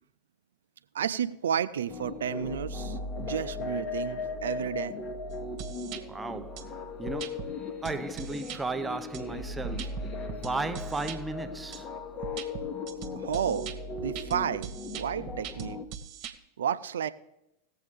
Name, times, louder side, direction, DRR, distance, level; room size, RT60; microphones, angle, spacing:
voice 1, 0.9-4.9 13.1-13.7 14.0-14.7 15.0-15.8 16.6-17.1, right 8 dB, 65° right, 0.6 m, -31 dB
sound 1, 1.9-15.9, left 3 dB, 30° left, 1.1 m, -37 dB
sound 2, 5.3-6.0 6.6-6.7 7.1-7.5 7.8-8.6 9.1-11.2 11.7-11.8 12.2-16.3, right 8 dB, 40° right, 1.2 m, -41 dB
voice 2, 6.1-6.7 7.0-11.9, right 3 dB, 10° right, 0.6 m, -36 dB
18.0 x 7.7 x 3.4 m
figure-of-eight pair, 90°, 0 cm